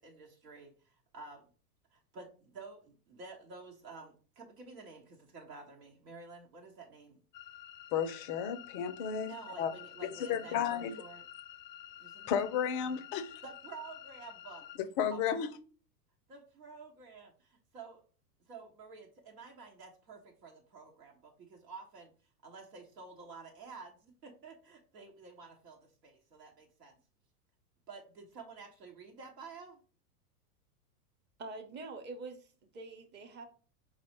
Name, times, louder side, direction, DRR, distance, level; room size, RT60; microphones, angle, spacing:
voice 1, 0.0-1.5 1.9-7.2 9.2-11.2 12.0-12.6 13.4-14.6 15.1-15.3 16.3-18.0 18.4-22.1 22.4-27.0 27.9-29.8, right 4 dB, 85° right, 1.1 m, -51 dB
sound 1, 7.3-14.8, left 12 dB, 90° left, 0.5 m, -50 dB
voice 2, 7.9-9.7 10.0-10.9 12.3-13.3 15.0-15.5, left 8 dB, 35° left, 0.4 m, -33 dB
voice 3, 31.4-33.4, right 3 dB, 25° right, 0.7 m, -45 dB
4.6 x 2.1 x 4.3 m
hypercardioid pair, 110°, 47 cm